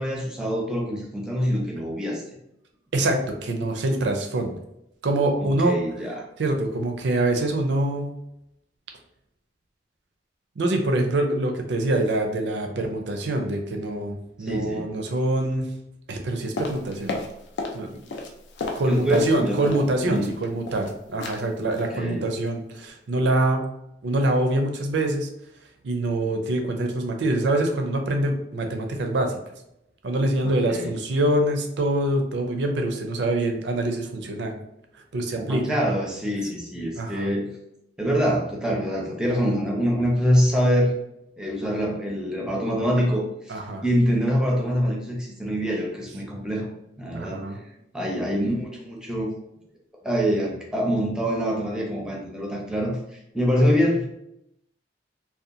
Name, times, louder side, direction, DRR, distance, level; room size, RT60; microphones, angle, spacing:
voice 1, 0.0-2.2 5.6-6.3 14.4-14.9 18.9-20.3 21.9-22.2 30.6-30.9 35.4-37.5 38.0-40.9 41.4-43.2 43.8-46.7 47.0-47.4 47.9-49.3 50.0-53.0 53.3-54.1, equal, 5° right, -2 dB, 0.5 m, -24 dB
voice 2, 2.9-4.6 5.0-5.8 6.4-8.2 10.6-15.7 16.1-17.2 17.7-17.9 18.7-23.6 24.0-25.3 25.8-29.3 30.0-34.6 35.1-35.8 37.0-37.3 43.5-43.8 47.1-47.6, right 1 dB, 70° right, 4 dB, 0.4 m, -25 dB
sound 1, 16.6-17.8 18.1-19.9 20.1-20.9 21.2-21.4 21.7-21.9 22.2-22.5 22.7-22.8, left 3 dB, 70° left, 0.4 m, -33 dB
2.7 x 2.2 x 2.5 m, 0.81 s
head